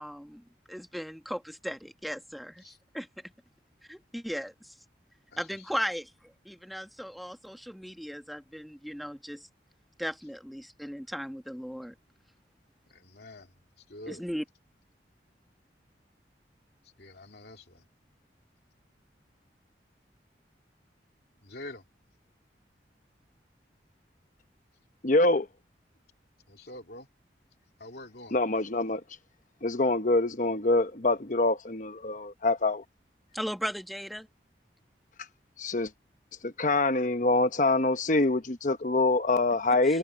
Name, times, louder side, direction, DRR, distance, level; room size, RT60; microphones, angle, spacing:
voice 1, 0.0-3.1 3.9-4.7 5.4-9.5 10.0-11.9 14.1-14.4 33.3-34.3 39.8-40.0, equal, ahead, 1.3 m, -37 dB
voice 2, 5.3-5.8 12.9-13.5 13.9-14.2 17.0-17.8 21.4-21.8 26.5-27.1 27.8-28.3, left 1 dB, 60° left, 3.1 m, -46 dB
voice 3, 25.0-25.5 28.3-29.0 29.6-32.8 35.6-35.9 36.4-40.0, left 2 dB, 45° left, 1.0 m, -25 dB
head